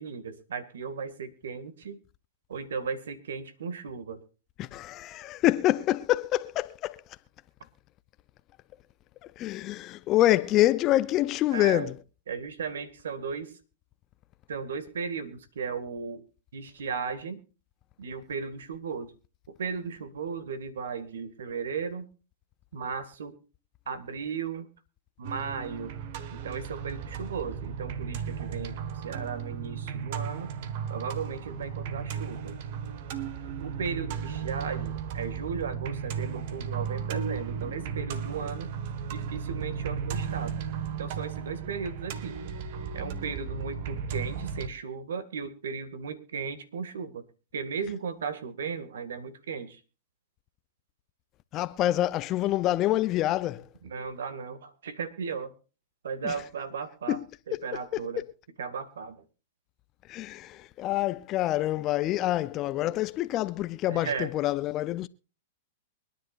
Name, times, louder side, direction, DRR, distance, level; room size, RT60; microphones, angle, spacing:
voice 1, 0.0-2.0 2.5-4.2 11.5-11.9 12.3-13.6 14.5-16.2 16.5-17.4 18.0-19.1 19.6-22.1 22.7-23.4 23.9-24.7 25.2-25.9 26.3-30.5 30.9-32.6 33.6-38.7 39.1-40.6 41.0-42.4 42.9-47.2 47.5-49.8 53.8-55.5 56.0-57.2 57.5-58.2 58.6-59.2 63.9-64.3, right 6 dB, 85° right, 2.1 m, -36 dB
voice 2, 4.6-7.0 9.2-12.0 51.5-53.7 56.2-56.4 57.1-57.2 57.5-57.6 57.9-58.0 60.1-65.1, left 15 dB, 35° left, 0.5 m, -26 dB
sound 1, 25.2-44.7, right 7 dB, 55° right, 1.5 m, -35 dB
24.0 x 10.5 x 2.5 m
hypercardioid pair, 130°, 0 cm